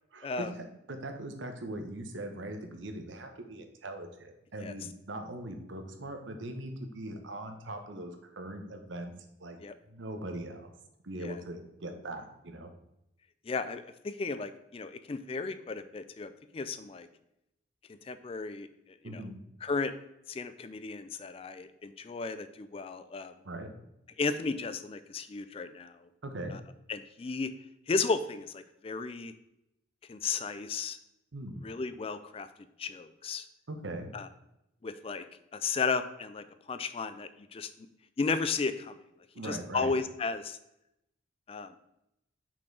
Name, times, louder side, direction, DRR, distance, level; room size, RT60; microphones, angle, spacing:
voice 1, 0.1-9.1 9.4-9.6 9.9-10.7 11.0-12.7 19.0-19.4 23.4-23.7 26.2-26.5 31.3-31.6 33.7-34.1 39.3-39.9, right 1 dB, 85° right, 6 dB, 0.9 m, -40 dB
voice 2, 13.5-17.1 18.1-18.7 19.0-19.2 19.6-19.9 20.3-23.3 24.2-25.9 26.9-27.5 27.9-29.3 30.1-31.0 31.6-32.5 32.8-33.4 34.1-34.3 34.8-35.2 35.5-37.7 38.2-39.0 39.4-40.6 41.5-41.7, left 4 dB, 30° left, 11 dB, 0.3 m, -34 dB
5.8 x 4.4 x 4.6 m, 0.84 s
head